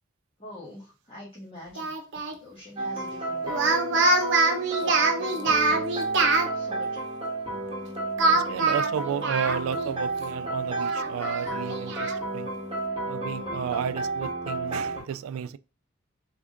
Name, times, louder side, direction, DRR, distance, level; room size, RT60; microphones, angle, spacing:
voice 1, 0.4-4.3 4.8-5.9 6.5-7.0, left 1 dB, 30° left, 1.4 m, -45 dB
Speech, 1.8-2.4 3.4-6.5 8.2-9.9 10.2-10.3 10.8-12.2, right 3 dB, 60° right, 0.8 m, -24 dB
sound 1, 2.8-15.0, right 2 dB, 25° right, 1.5 m, -32 dB
voice 2, 8.2-12.5 13.1-15.6, right 8 dB, 85° right, 0.3 m, -32 dB
3.5 x 3.5 x 3.7 m
head